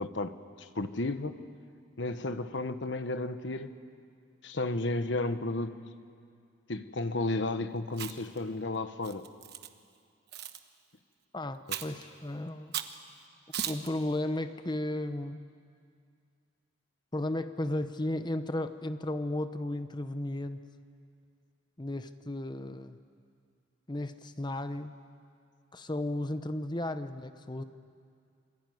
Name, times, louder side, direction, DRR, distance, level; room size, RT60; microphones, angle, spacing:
voice 1, 0.0-1.4 2.0-3.7 4.4-5.8 6.7-9.3 11.7-11.8, left 2 dB, 65° left, 10 dB, 1.2 m, -33 dB
Chewing mastication, 7.9-8.4 9.0-9.7 10.3-10.6 11.7-12.0 12.7-13.0 13.5-13.9, right 9 dB, 55° right, 1.2 m, -37 dB
voice 2, 11.3-12.7 13.7-15.4 17.1-20.6 21.8-23.0 23.9-24.9 25.7-27.6, left 1 dB, 25° left, 10 dB, 0.9 m, -34 dB
28.0 x 21.0 x 9.4 m, 2.3 s
head